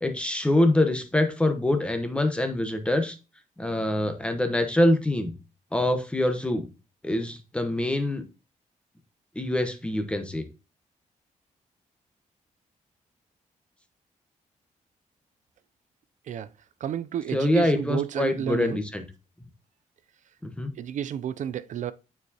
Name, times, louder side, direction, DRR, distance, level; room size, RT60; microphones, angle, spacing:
voice 1, 0.0-3.1 3.6-5.3 5.7-6.7 7.0-8.2 9.3-10.5 17.3-19.0 20.4-20.7, left 1 dB, 10° left, 0.9 m, -25 dB
voice 2, 16.8-18.8 20.8-21.9, right 9 dB, 65° right, 0.4 m, -31 dB
9.3 x 4.7 x 2.8 m
wide cardioid pair, 140°, 13 cm